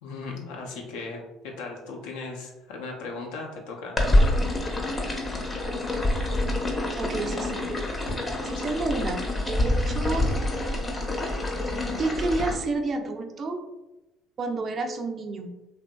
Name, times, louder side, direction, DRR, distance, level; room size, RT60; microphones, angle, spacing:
voice 1, 0.0-4.0 8.5-8.6, left 3 dB, 75° left, 0 dB, 0.6 m, -37 dB
sound 1, 4.0-12.5, left 1 dB, 25° left, 0.7 m, -26 dB
voice 2, 7.0-7.7 8.4-10.3 12.0-13.6 14.4-15.5, right 3 dB, 40° right, 5 dB, 0.4 m, -30 dB
2.9 x 2.6 x 2.2 m, 1.0 s
hypercardioid pair, 60°, 0 cm